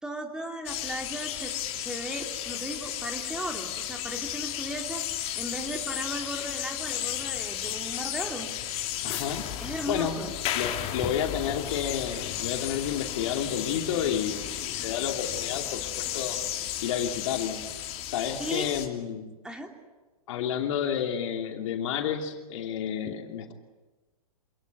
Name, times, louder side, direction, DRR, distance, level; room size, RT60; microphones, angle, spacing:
voice 1, 0.0-5.0 5.3-8.5 9.6-10.3 18.4-18.7 19.4-19.7, right 1 dB, 5° right, 3 dB, 3.2 m, -36 dB
sound 1, 0.6-18.9, left 12 dB, 35° left, 2.8 m, -34 dB
voice 2, 9.0-9.5 9.9-16.4 16.8-17.7 18.0-19.3 20.3-23.5, left 8 dB, 55° left, 4 dB, 2.9 m, -31 dB
27.5 x 17.5 x 9.3 m, 1.2 s
hypercardioid pair, 120°, 19 cm